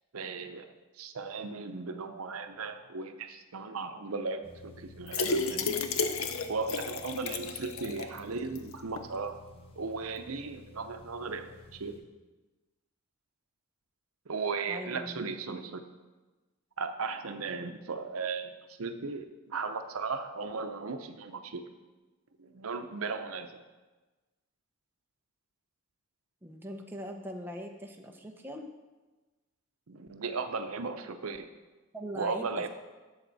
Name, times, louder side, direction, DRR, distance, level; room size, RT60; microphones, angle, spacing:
voice 1, 0.1-0.7 0.9-5.7 6.5-9.4 9.8-12.0 14.3-15.8 16.8-18.5 18.8-21.6 22.4-23.6 29.9-31.5 32.2-32.7, right 4 dB, 80° right, 7 dB, 0.7 m, -36 dB
sound 1, 4.4-12.0, left 2 dB, 25° left, 1.0 m, -53 dB
sound 2, 5.1-8.2 8.6-8.7 9.0-9.1, left 4 dB, 70° left, 0.7 m, -32 dB
voice 2, 14.7-15.2 26.4-28.7 31.9-32.5, equal, 10° right, 2 dB, 0.7 m, -41 dB
12.0 x 7.2 x 4.0 m, 1.2 s
head